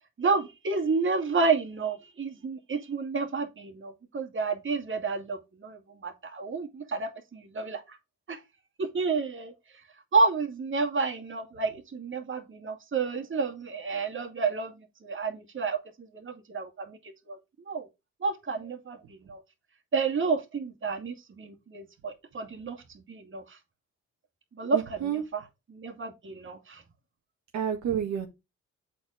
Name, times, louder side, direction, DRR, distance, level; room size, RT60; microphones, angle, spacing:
voice 1, 0.2-8.0 8.3-8.4 8.8-9.5 10.1-14.7 15.0-15.8 16.1-17.0 17.3-17.4 17.7-17.9 18.2-19.4 19.9-22.8 23.1-23.6 24.6-25.4 25.7-26.8, right 4 dB, 40° right, 2.2 m, -30 dB
voice 2, 24.7-25.2 27.5-28.3, right 9 dB, 70° right, 1.7 m, -29 dB
7.7 x 4.7 x 4.9 m
cardioid pair, 90°, 30 cm